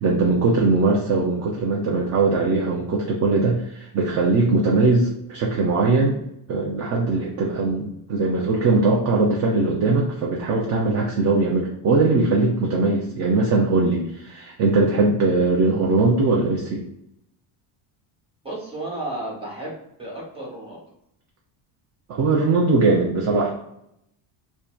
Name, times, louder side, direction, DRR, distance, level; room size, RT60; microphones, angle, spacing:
voice 1, 0.0-6.2 6.5-16.8 22.1-23.5, right 3 dB, 35° right, -2 dB, 0.4 m, -20 dB
voice 2, 18.4-19.7 20.0-20.8, right 2 dB, 10° right, -5 dB, 1.1 m, -32 dB
2.6 x 2.2 x 2.3 m, 0.77 s
cardioid pair, 120°, 50 cm